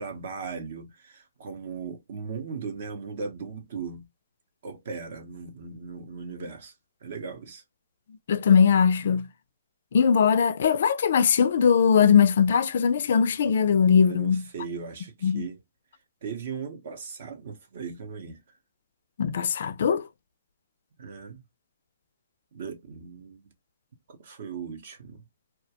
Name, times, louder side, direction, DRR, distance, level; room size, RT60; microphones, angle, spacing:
voice 1, 0.0-4.0 4.6-6.7 7.0-7.6 14.1-15.6 16.2-18.4 21.0-21.4 22.5-23.5 24.1-25.2, right 5 dB, 50° right, 0.6 m, -38 dB
voice 2, 8.3-9.3 9.9-14.4 15.2-15.4 19.2-20.0, left 7 dB, 55° left, 0.3 m, -20 dB
2.3 x 2.1 x 2.7 m
hypercardioid pair, 165°, 0 cm